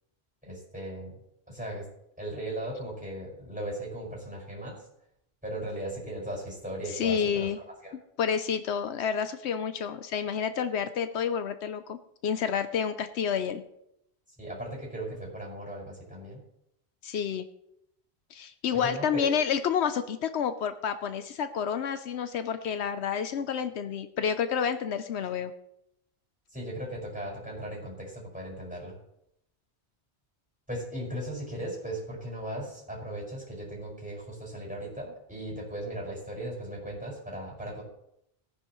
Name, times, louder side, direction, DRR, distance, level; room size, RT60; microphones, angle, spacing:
voice 1, 0.4-1.1 1.5-1.8 2.2-4.8 5.4-7.5 7.8-7.9 14.4-16.4 18.7-19.3 26.5-29.0 30.7-37.8, right 1 dB, 5° right, -3 dB, 5.5 m, -37 dB
voice 2, 6.9-7.6 8.2-13.6 17.0-17.4 18.3-25.5, left 7 dB, 80° left, 10 dB, 1.0 m, -29 dB
18.0 x 9.9 x 3.1 m, 0.78 s
omnidirectional pair, 1.1 m